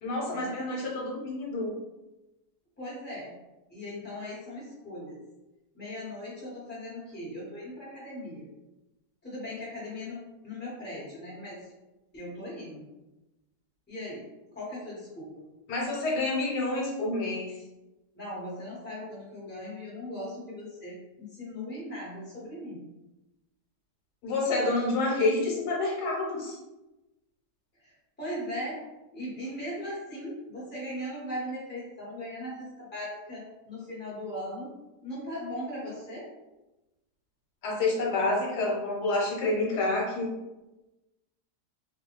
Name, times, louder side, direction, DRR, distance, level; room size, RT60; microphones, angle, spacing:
voice 1, 0.0-1.7 15.7-17.5 24.2-26.6 37.6-40.3, left 2 dB, 80° left, -2 dB, 1.3 m, -28 dB
voice 2, 2.8-3.3 3.7-5.2 5.7-8.5 9.2-11.7 12.1-12.8 13.9-14.2 14.5-15.5 18.1-22.8 27.8-28.8 29.1-34.7 35.0-36.3, left 1 dB, 10° left, -8 dB, 0.9 m, -39 dB
2.6 x 2.4 x 3.0 m, 1.0 s
omnidirectional pair, 1.7 m